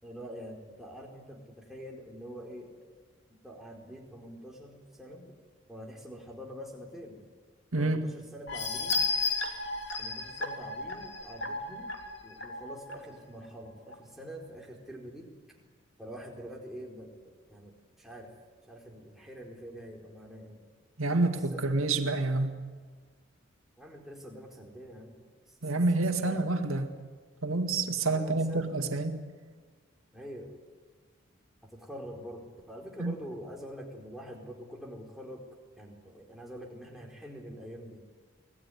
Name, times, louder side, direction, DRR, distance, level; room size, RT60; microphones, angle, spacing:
voice 1, 0.0-2.7 3.4-5.4 5.7-7.3 7.8-9.1 10.0-11.9 12.2-15.3 16.0-17.2 17.5-18.3 18.7-20.6 21.2-21.8 23.8-25.6 26.0-26.5 28.0-28.6 30.1-30.5 31.6-35.4 35.8-38.0, equal, ahead, 4.4 m, -45 dB
voice 2, 7.7-8.1 21.0-22.6 25.6-26.9 27.4-29.3 33.0-33.1, right 2 dB, 85° right, 2.1 m, -28 dB
sound 1, 8.5-12.9 13.4-13.5 13.9-14.0, left 3 dB, 55° left, 3.0 m, -33 dB
25.0 x 18.5 x 9.6 m
head